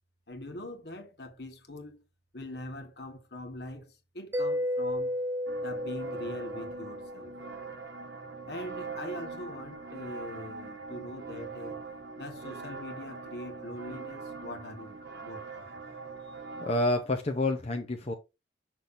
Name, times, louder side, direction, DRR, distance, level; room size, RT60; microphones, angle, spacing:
voice 1, 0.3-2.0 2.3-5.2 5.6-7.3 8.5-11.8 12.2-15.9, left 1 dB, 60° left, 1.3 m, -42 dB
Mallet percussion, 4.3-7.8, left 1 dB, 10° right, 0.7 m, -33 dB
sound 1, 5.5-16.8, right 4 dB, 70° right, 1.1 m, -42 dB
voice 2, 16.6-18.1, left 1 dB, 35° left, 0.7 m, -28 dB
7.0 x 6.0 x 2.6 m
head